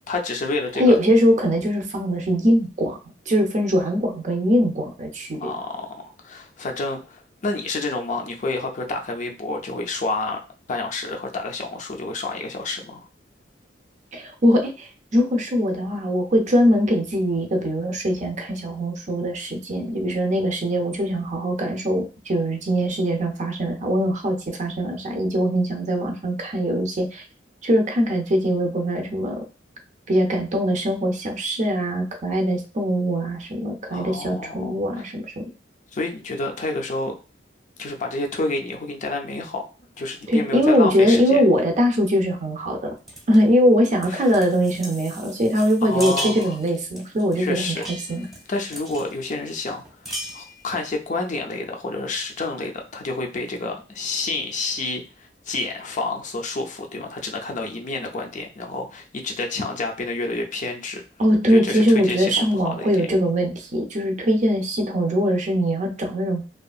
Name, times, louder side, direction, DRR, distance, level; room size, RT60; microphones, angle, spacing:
voice 1, 0.1-1.0 5.4-10.4 10.7-13.1 33.9-35.0 35.9-37.2 37.8-39.6 40.0-41.4 44.1-44.3 45.8-46.6 47.4-47.9 48.5-49.8 50.3-61.0 61.5-62.9, left 3 dB, 40° left, 2 dB, 0.5 m, -29 dB
voice 2, 0.8-3.0 3.3-5.5 14.1-27.2 27.6-29.4 30.1-35.4 40.3-42.9 43.3-48.3 61.2-66.5, equal, 40° right, 3 dB, 0.5 m, -21 dB
sound 1, 43.1-43.4 43.9-49.1 49.5-49.6 49.9-50.8, right 1 dB, ahead, 0.8 m, -36 dB
2.7 x 2.4 x 2.3 m, 0.32 s
head